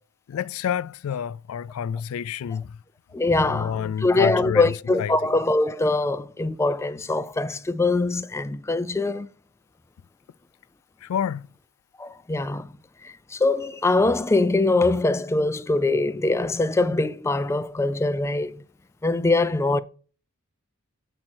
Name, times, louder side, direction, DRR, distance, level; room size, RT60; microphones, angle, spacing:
voice 1, 0.3-2.7 3.4-4.7 5.0-5.1 11.0-11.4, left 8 dB, 90° left, 0.3 m, -28 dB
voice 2, 3.1-9.3 12.0-12.7 13.3-18.6 19.0-19.8, left 2 dB, 15° left, 0.3 m, -23 dB
7.8 x 4.3 x 4.3 m
head